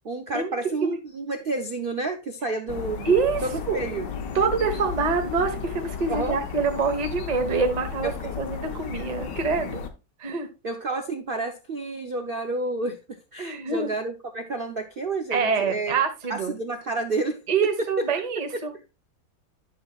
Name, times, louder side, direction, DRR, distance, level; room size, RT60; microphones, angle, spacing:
voice 1, 0.0-3.1 3.4-4.1 6.1-6.4 8.0-8.3 10.6-16.0 16.3-17.4 18.0-18.1 18.5-18.6, right 3 dB, 85° right, 0.4 m, -30 dB
sound 1, 2.7-9.9, left 6 dB, 70° left, 1.6 m, -34 dB
voice 2, 3.0-3.8 4.3-8.1 8.4-9.8 10.2-10.5 13.4-13.9 15.3-16.6 17.5-18.7, right 5 dB, 25° right, 1.1 m, -25 dB
11.5 x 6.5 x 2.3 m
omnidirectional pair, 2.1 m